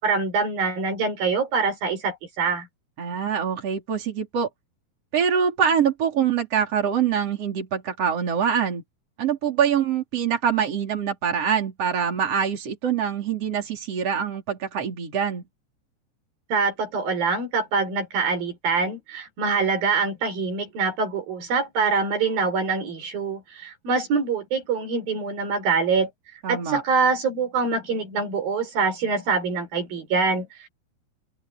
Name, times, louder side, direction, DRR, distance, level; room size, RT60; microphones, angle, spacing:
voice 1, 0.0-2.7 16.5-26.1 26.5-30.7, right 4 dB, 85° right, 7.1 m, -24 dB
voice 2, 3.0-4.5 5.1-8.8 9.2-15.4 26.4-26.8, right 7 dB, 45° right, 5.1 m, -24 dB
open air
omnidirectional pair, 4.0 m